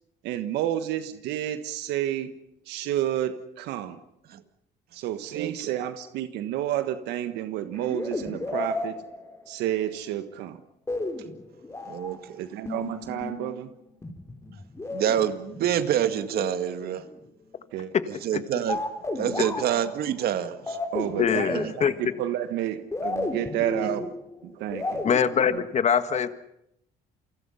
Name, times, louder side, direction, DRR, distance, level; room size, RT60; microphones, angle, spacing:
voice 1, 0.2-2.3 2.7-4.0 4.9-9.0 9.5-10.6 12.4-13.7 17.7-17.9 20.9-24.1 24.4-25.1 25.5-25.6, right 12 dB, 90° right, 1.4 m, -30 dB
voice 2, 5.3-5.7 11.9-12.5 14.9-17.1 18.1-18.8 19.2-20.8 21.5-21.7 23.8-23.9, right 10 dB, 65° right, 2.0 m, -27 dB
sound 1, 7.8-9.7 10.9-12.2 12.7-13.5 14.0-17.2 18.7-22.4 22.9-25.4, left 2 dB, 15° left, 4.8 m, -33 dB
voice 3, 21.2-22.2 25.0-26.4, left 7 dB, 40° left, 1.7 m, -23 dB
29.0 x 24.5 x 5.7 m
cardioid pair, 110°, 17 cm